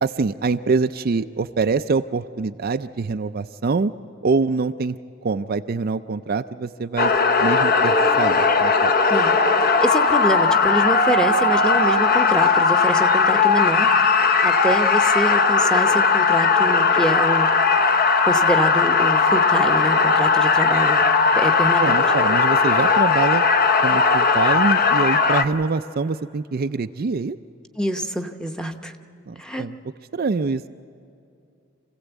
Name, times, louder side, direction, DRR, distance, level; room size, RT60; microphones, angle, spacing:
voice 1, 0.0-3.9 4.2-5.0 5.2-7.1 7.4-8.9 21.8-23.4 23.8-27.4 29.3-29.8 30.1-30.7, right 4 dB, 45° right, 9 dB, 0.4 m, -24 dB
sound 1, 7.0-25.4, left 4 dB, 45° left, 0.9 m, -18 dB
voice 2, 9.1-17.6 18.2-21.0 21.3-22.0 27.8-29.0 29.4-29.7, equal, 5° left, 5 dB, 0.9 m, -26 dB
26.5 x 16.0 x 8.1 m, 2.7 s
head